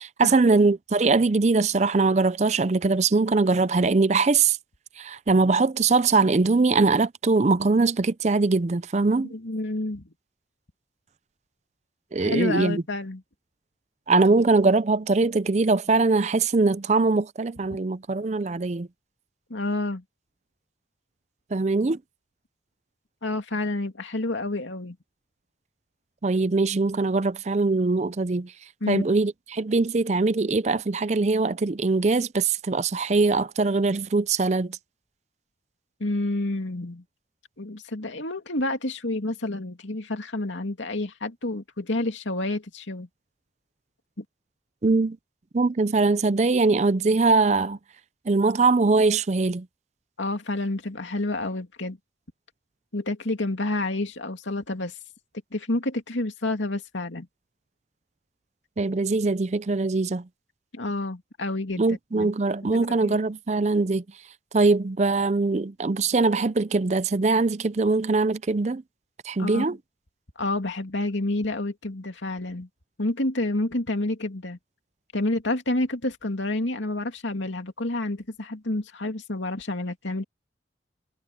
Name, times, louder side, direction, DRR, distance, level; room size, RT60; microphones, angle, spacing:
voice 1, 0.0-4.6 5.0-9.3 12.1-12.8 14.1-18.9 21.5-22.0 26.2-28.5 28.9-34.8 44.8-45.2 45.5-47.8 48.3-49.7 58.8-60.2 61.8-64.0 64.5-68.8 69.2-69.8, right 3 dB, 35° right, 0.5 m, -22 dB
voice 2, 9.3-10.1 12.2-13.2 19.5-20.0 23.2-25.0 28.8-29.0 36.0-37.0 37.6-43.1 44.2-44.3 50.2-52.0 52.9-54.9 55.5-57.3 60.7-62.3 62.7-63.2 69.4-69.7 70.4-72.7 73.0-74.6 75.1-80.2, left 2 dB, 85° left, 2.6 m, -29 dB
head